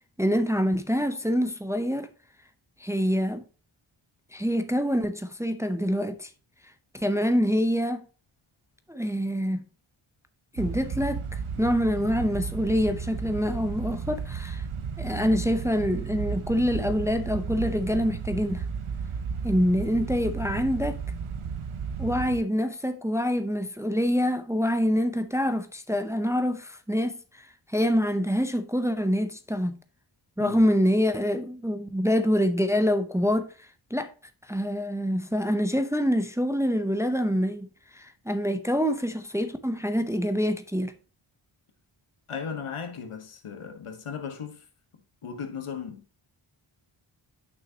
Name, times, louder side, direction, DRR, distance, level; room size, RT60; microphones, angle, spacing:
voice 1, 0.2-2.1 2.8-3.4 4.3-6.3 6.9-8.1 8.9-9.6 10.5-14.6 15.0-18.7 19.4-21.0 22.0-29.8 30.4-34.1 34.5-37.7 37.9-40.9, equal, 5° right, 0.6 m, -26 dB
sound 1, 10.6-22.4, right 6 dB, 75° right, 0.8 m, -34 dB
voice 2, 42.3-44.6 45.2-46.0, left 6 dB, 80° left, 1.3 m, -36 dB
8.7 x 6.2 x 2.8 m
wide cardioid pair, 80°, 50 cm